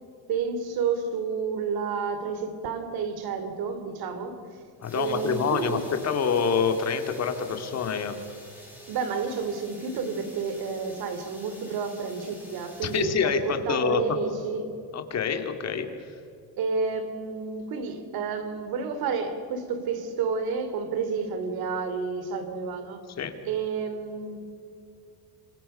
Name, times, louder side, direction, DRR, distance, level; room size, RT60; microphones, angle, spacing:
voice 1, 0.3-4.4 4.9-5.8 8.9-14.7 16.6-23.0 23.4-24.4, right 5 dB, 65° right, 9 dB, 3.1 m, -30 dB
voice 2, 4.8-8.1 12.8-14.2 14.9-15.9 23.2-23.4, left 6 dB, 40° left, 7 dB, 2.4 m, -26 dB
sound 1, 4.8-13.5, left 1 dB, 5° right, 7.3 m, -49 dB
27.0 x 26.5 x 5.6 m, 2.6 s
cardioid pair, 160°, 40 cm